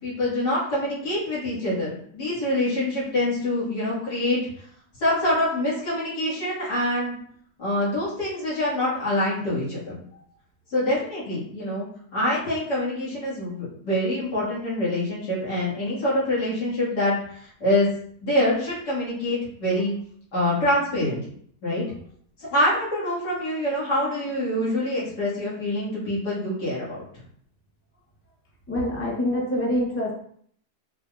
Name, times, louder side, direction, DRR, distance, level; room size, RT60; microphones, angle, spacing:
voice 1, 0.0-4.4 5.0-7.1 7.6-10.0 10.7-11.9 12.1-17.9 18.2-19.9 20.3-21.2 21.6-21.8 22.5-27.0, left 1 dB, 75° left, -9 dB, 2.6 m, -25 dB
voice 2, 28.7-30.1, left 1 dB, 15° left, -3 dB, 0.5 m, -25 dB
4.5 x 3.6 x 2.5 m, 0.63 s
omnidirectional pair, 1.7 m